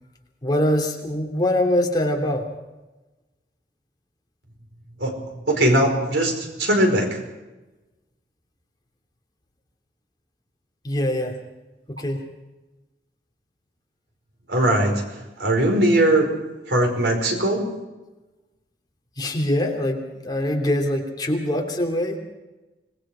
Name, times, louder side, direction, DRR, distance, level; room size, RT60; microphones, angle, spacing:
voice 1, 0.4-2.5 10.8-11.4 11.9-12.2 19.2-22.2, left 1 dB, 25° left, 1 dB, 2.9 m, -23 dB
voice 2, 5.5-7.2 14.5-15.0 15.4-16.3 16.7-17.7, right 1 dB, 80° right, 3 dB, 5.0 m, -20 dB
26.0 x 20.0 x 5.1 m, 1.1 s
head